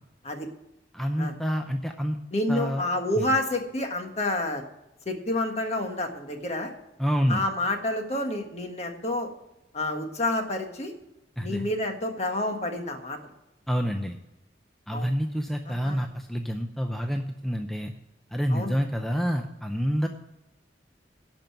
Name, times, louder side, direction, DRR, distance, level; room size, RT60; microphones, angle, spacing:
voice 1, 0.9-2.2 2.5-2.9 3.2-3.3 7.0-7.4 11.4-11.7 13.7-14.2 14.9-17.9 18.3-20.1, equal, ahead, 4 dB, 0.6 m, -28 dB
voice 2, 2.3-4.6 5.0-6.7 7.3-9.3 9.7-10.9 11.4-13.2 14.9-15.1 15.7-16.0 18.5-18.7, left 1 dB, 35° left, 4 dB, 1.5 m, -29 dB
11.5 x 5.3 x 8.7 m, 0.94 s
head